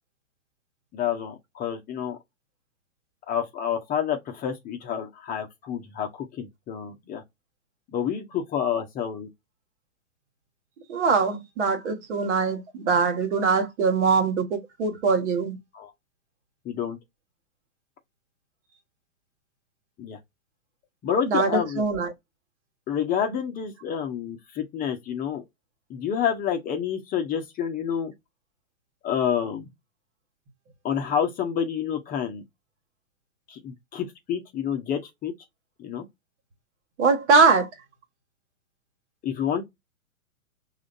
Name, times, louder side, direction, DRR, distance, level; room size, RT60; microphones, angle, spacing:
voice 1, 0.9-2.2 3.3-7.2 7.9-9.3 15.7-15.9 16.6-17.0 20.0-20.2 21.0-21.8 22.9-25.4 25.9-28.1 29.0-29.7 30.8-32.4 33.5-35.3 35.8-36.0 39.2-39.6, left 8 dB, 20° left, 0.9 m, -28 dB
voice 2, 10.9-15.6 21.3-22.1 37.0-37.7, right 5 dB, 55° right, 1.7 m, -22 dB
4.9 x 2.8 x 2.5 m
hypercardioid pair, 120°, 41 cm